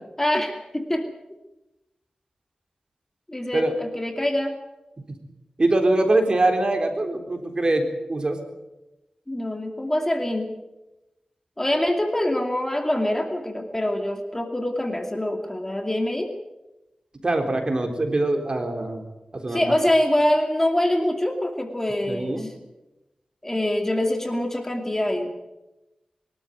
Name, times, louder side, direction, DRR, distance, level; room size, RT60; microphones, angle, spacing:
voice 1, 0.2-1.1 3.3-4.5 9.3-10.5 11.6-16.3 19.5-22.5 23.4-25.3, left 1 dB, 15° left, 4 dB, 2.6 m, -24 dB
voice 2, 5.6-8.4 17.2-19.0 19.4-19.8 22.1-22.5, right 2 dB, 45° right, 5 dB, 3.8 m, -23 dB
23.0 x 12.5 x 9.3 m, 1.0 s
wide cardioid pair, 65°, 2 cm